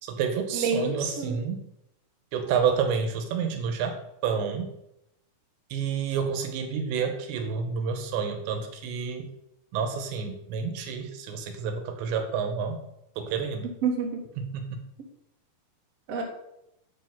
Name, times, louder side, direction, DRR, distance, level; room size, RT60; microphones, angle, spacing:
voice 1, 0.0-1.7 2.3-4.7 5.7-9.3 9.7-12.9 13.2-13.7 14.4-14.7, right 6 dB, 80° right, 6 dB, 3.0 m, -29 dB
voice 2, 0.5-1.4 13.8-14.2 16.1-16.2, right 5 dB, 55° right, 0 dB, 1.8 m, -28 dB
8.1 x 5.4 x 5.8 m, 0.82 s
omnidirectional pair, 5.2 m